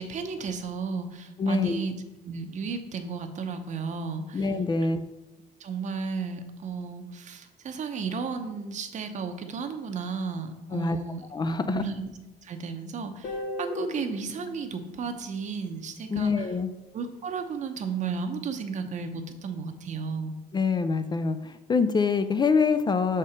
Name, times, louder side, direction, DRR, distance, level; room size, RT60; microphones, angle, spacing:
voice 1, 0.0-1.9 2.2-4.5 5.6-11.2 11.7-12.1 12.4-16.5 16.9-20.3, right 5 dB, 45° right, 8 dB, 0.8 m, -33 dB
voice 2, 1.4-1.8 4.3-5.0 10.7-11.0 11.3-11.8 16.1-16.7 20.5-23.2, left 4 dB, 25° left, 10 dB, 0.4 m, -25 dB
Guitar, 13.2-16.2, left 2 dB, 85° left, 1.1 m, -38 dB
6.1 x 4.4 x 4.9 m, 1.0 s
cardioid pair, 110°, 17 cm